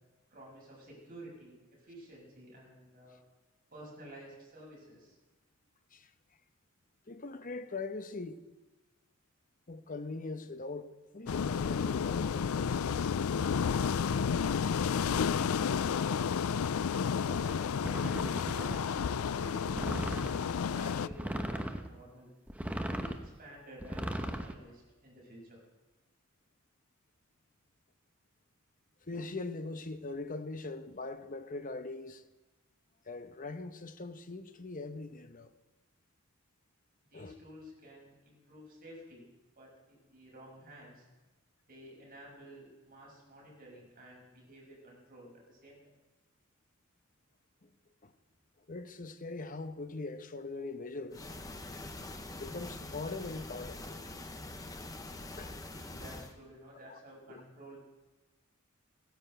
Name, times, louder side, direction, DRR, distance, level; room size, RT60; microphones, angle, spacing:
voice 1, 0.3-3.2 3.7-5.2 14.6-16.6 16.9-17.9 18.4-22.3 22.7-25.6 37.1-41.0 41.6-45.9 55.8-57.8, equal, 45° right, 6.9 m, -52 dB
voice 2, 7.1-8.4 9.7-13.2 29.0-32.2 33.1-35.5 37.1-37.3 47.6-47.7 48.0-48.1 48.7-51.3 52.3-54.1 55.4-55.6 56.9-57.0 57.3-57.4, left 3 dB, 40° left, 1.0 m, -41 dB
sound 1, 11.3-21.1, left 6 dB, 85° left, 0.4 m, -31 dB
sound 2, 17.8-19.0 19.7-20.4 21.1-21.9 22.5-23.3 23.8-24.5, right 1 dB, 5° right, 1.0 m, -37 dB
sound 3, 51.1-56.3, left 2 dB, 15° left, 1.1 m, -44 dB
16.0 x 10.5 x 7.9 m
head